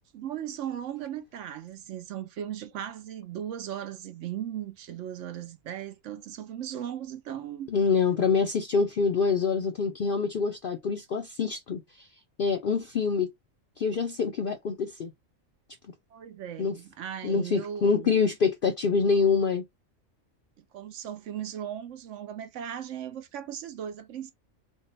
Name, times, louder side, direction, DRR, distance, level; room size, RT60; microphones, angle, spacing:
voice 1, 0.1-7.7 16.1-18.1 20.6-24.3, right 10 dB, 65° right, 0.9 m, -37 dB
voice 2, 7.7-12.1 12.4-13.3 13.8-15.1 16.6-16.8 17.2-19.6, left 5 dB, 55° left, 0.6 m, -26 dB
3.6 x 2.2 x 4.0 m
omnidirectional pair, 1.4 m